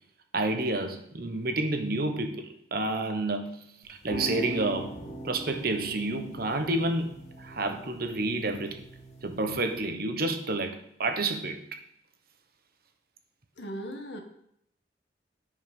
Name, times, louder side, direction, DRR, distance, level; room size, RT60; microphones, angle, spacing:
voice 1, 0.3-5.0 5.2-8.8 9.2-11.8, right 2 dB, 60° right, 6 dB, 1.1 m, -30 dB
sound 1, 3.8-9.8, right 2 dB, 40° left, 2.2 m, -41 dB
voice 2, 13.6-14.2, equal, 85° left, 4 dB, 1.6 m, -37 dB
10.0 x 5.7 x 5.5 m, 0.72 s
head